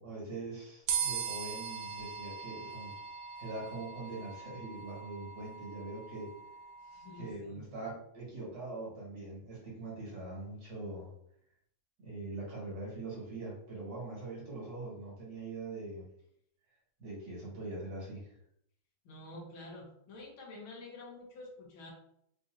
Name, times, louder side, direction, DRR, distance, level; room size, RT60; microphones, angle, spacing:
voice 1, 0.0-2.9 3.4-6.3 7.1-11.1 12.0-16.0 17.0-18.3, right 2 dB, 60° right, -6 dB, 2.5 m, -42 dB
sound 1, 0.9-7.3, right 6 dB, 90° right, 1.5 m, -40 dB
voice 2, 6.8-7.8 19.1-21.9, left 2 dB, 90° left, -3 dB, 1.9 m, -49 dB
5.1 x 2.8 x 2.5 m, 0.71 s
omnidirectional pair, 2.2 m